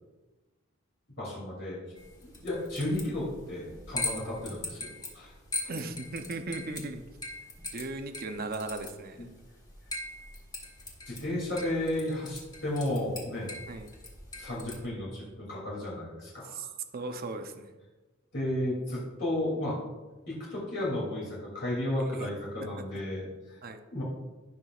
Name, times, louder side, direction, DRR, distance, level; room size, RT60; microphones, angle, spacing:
voice 1, 1.2-1.8 2.4-5.3 5.6-5.7 11.1-13.7 14.4-16.7 18.3-19.8 20.3-23.6 23.9-24.0, left 1 dB, 55° left, -6 dB, 2.9 m, -33 dB
sound 1, 2.0-14.9, left 2 dB, 20° left, 1.6 m, -41 dB
voice 2, 5.7-7.0 7.7-9.3 13.7-13.9 16.4-16.7 16.9-17.7 22.0-22.3 22.6-22.8 23.6-23.8, right 2 dB, 45° right, 7 dB, 0.7 m, -37 dB
16.5 x 6.0 x 2.5 m, 1.2 s
head